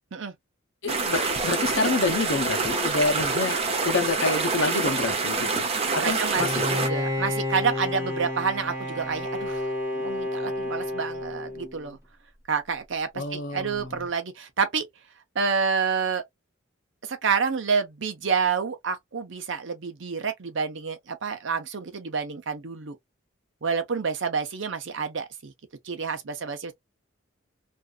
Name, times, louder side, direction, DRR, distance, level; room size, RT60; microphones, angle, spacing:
voice 1, 0.8-3.6 3.8-5.6 5.9-6.6 13.1-14.1, left 3 dB, 65° left, 0.7 m, -27 dB
sound 1, 0.9-6.9, right 4 dB, 30° right, 0.7 m, -26 dB
voice 2, 6.0-12.0 12.5-14.9 15.3-16.2 17.0-23.0 23.6-25.5 25.8-26.7, right 5 dB, 60° right, 0.7 m, -28 dB
Bowed string instrument, 6.4-11.9, left 2 dB, 15° right, 1.0 m, -30 dB
2.6 x 2.4 x 2.3 m
head